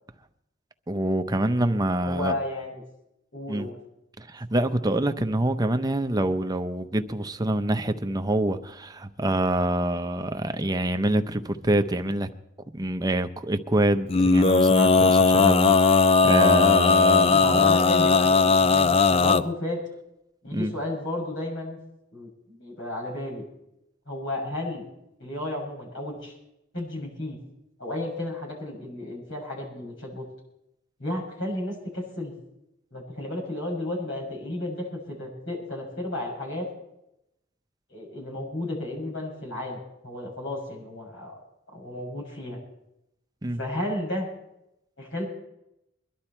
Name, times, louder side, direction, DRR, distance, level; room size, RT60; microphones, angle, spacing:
voice 1, 0.9-2.4 3.5-3.7 4.2-12.3 12.7-17.7 20.5-20.7 43.4-43.6, right 1 dB, 20° right, 0.8 m, -26 dB
voice 2, 2.0-2.8 3.3-3.7 17.3-19.8 20.4-21.8 22.1-23.4 24.1-24.8 25.2-26.3 26.7-27.4 27.8-30.2 31.0-32.3 32.9-36.7 37.9-41.3 41.7-42.6 43.6-44.3 45.0-45.3, left 1 dB, 85° left, 7.0 m, -33 dB
Male singing, 14.1-19.4, left 4 dB, 30° left, 0.5 m, -18 dB
22.5 x 11.5 x 4.4 m
head